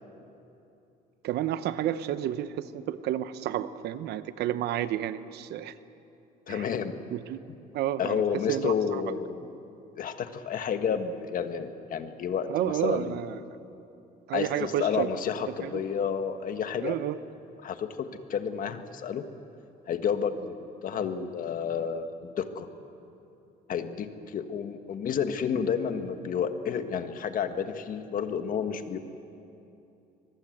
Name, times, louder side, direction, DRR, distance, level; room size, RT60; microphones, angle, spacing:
voice 1, 1.2-5.7 6.5-6.7 7.1-7.4 7.7-9.0 12.5-13.4 14.3-15.1 15.6-15.8 16.8-17.2, right 12 dB, 75° right, 13 dB, 0.9 m, -31 dB
voice 2, 6.5-7.0 8.0-9.5 10.0-13.3 14.3-16.9 17.6-19.2 19.9-22.7 23.7-29.0, left 7 dB, 55° left, 8 dB, 1.5 m, -30 dB
23.5 x 20.5 x 7.9 m, 2.8 s
cardioid pair, 110°, 17 cm